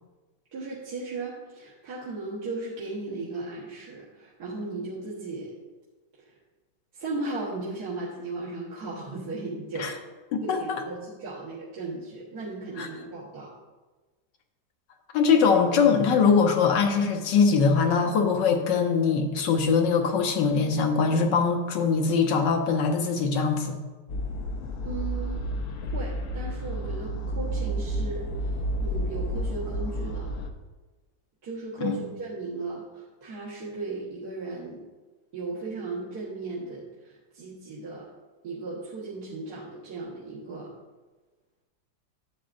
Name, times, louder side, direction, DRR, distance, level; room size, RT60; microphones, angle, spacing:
voice 1, 0.5-5.6 6.2-6.3 6.9-10.0 10.4-13.5 24.8-25.5 25.9-30.3 31.4-34.8 35.3-38.1 38.4-40.7, right 3 dB, 60° right, -8 dB, 2.0 m, -36 dB
voice 2, 10.3-10.8 12.8-12.9 15.1-23.8 31.8-32.0, left 5 dB, 80° left, 4 dB, 1.6 m, -22 dB
sound 1, 24.1-30.5, equal, 60° left, 0.9 m, -31 dB
11.5 x 8.3 x 2.6 m, 1.2 s
omnidirectional pair, 1.9 m